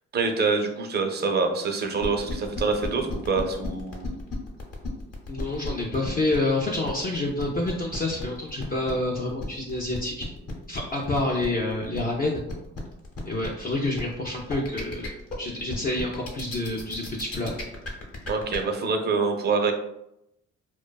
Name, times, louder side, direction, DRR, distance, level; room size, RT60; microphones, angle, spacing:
voice 1, 0.1-4.2 18.3-19.7, right 4 dB, 35° right, 4 dB, 0.4 m, -26 dB
sound 1, 2.0-18.6, left 2 dB, 50° left, 0.8 m, -35 dB
voice 2, 5.3-10.3 10.7-12.4 13.2-17.6, left 2 dB, 30° left, -2 dB, 0.4 m, -28 dB
2.5 x 2.2 x 2.2 m, 0.83 s
cardioid pair, 90°, 30 cm